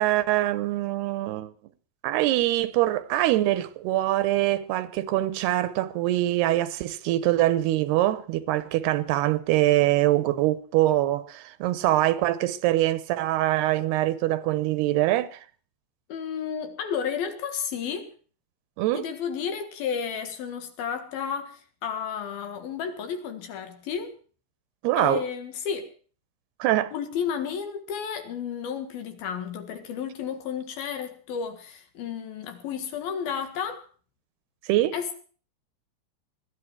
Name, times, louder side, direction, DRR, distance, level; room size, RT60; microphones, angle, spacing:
voice 1, 0.0-1.5 2.0-15.4 18.8-19.0 24.8-25.2 26.6-26.9 34.6-34.9, right 15 dB, 80° right, 2.9 m, -24 dB
voice 2, 16.1-18.1 18.9-24.2 25.0-25.9 26.9-33.8 34.9-35.2, left 7 dB, 70° left, 3.4 m, -32 dB
20.5 x 13.0 x 4.7 m
omnidirectional pair, 4.7 m